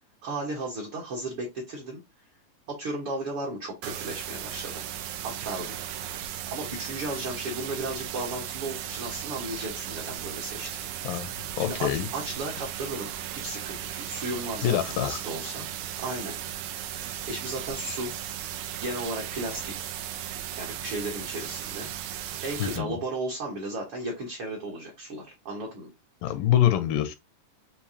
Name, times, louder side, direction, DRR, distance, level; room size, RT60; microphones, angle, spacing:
voice 1, 0.2-2.0 2.7-4.8 5.2-5.7 6.5-10.9 11.7-16.3 17.3-18.1 18.8-19.9 20.6-21.9 22.4-25.9, right 2 dB, 60° right, 1.4 m, -35 dB
sound 1, 3.8-22.8, right 11 dB, 85° right, 2.4 m, -36 dB
voice 2, 11.0-12.1 14.6-15.2 22.6-23.0 26.2-27.2, left 11 dB, 85° left, 2.4 m, -25 dB
6.9 x 2.7 x 2.7 m
omnidirectional pair, 4.1 m